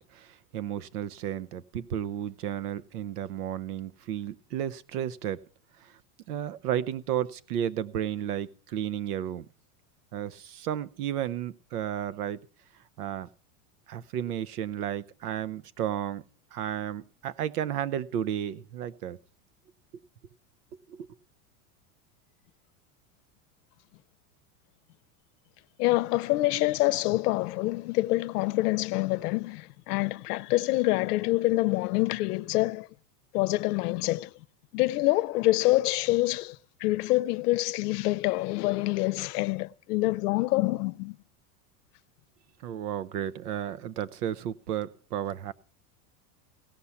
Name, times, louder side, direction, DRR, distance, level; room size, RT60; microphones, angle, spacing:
voice 1, 0.1-5.4 5.8-6.0 6.3-9.5 10.1-12.4 13.0-13.3 13.9-16.2 16.5-19.2 20.9-21.1 42.6-45.5, right 10 dB, 90° right, 0.9 m, -33 dB
voice 2, 25.8-32.9 33.3-34.3 34.7-41.2, left 19 dB, 85° left, 0.7 m, -26 dB
17.0 x 5.8 x 9.7 m
supercardioid pair, 135°, 45 cm